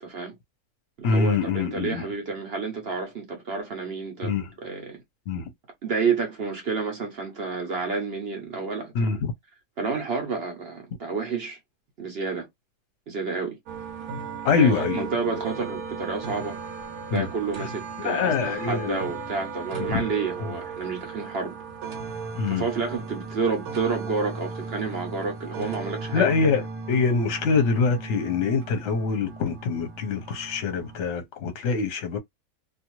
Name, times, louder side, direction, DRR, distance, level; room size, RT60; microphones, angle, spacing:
voice 1, 0.0-0.4 1.0-5.0 5.8-9.2 9.8-11.6 12.0-12.5 13.1-13.6 14.5-16.6 17.1-21.6 22.5-26.3, right 4 dB, 55° right, 0.7 m, -30 dB
voice 2, 1.0-2.1 4.2-4.5 5.3-5.5 8.9-9.3 14.4-15.1 17.1-17.3 18.0-19.0 19.9-20.1 22.3-22.7 26.1-32.2, left 5 dB, 55° left, 0.9 m, -24 dB
sound 1, 13.7-31.1, right 4 dB, 75° right, 1.1 m, -36 dB
2.6 x 2.4 x 2.9 m
omnidirectional pair, 1.7 m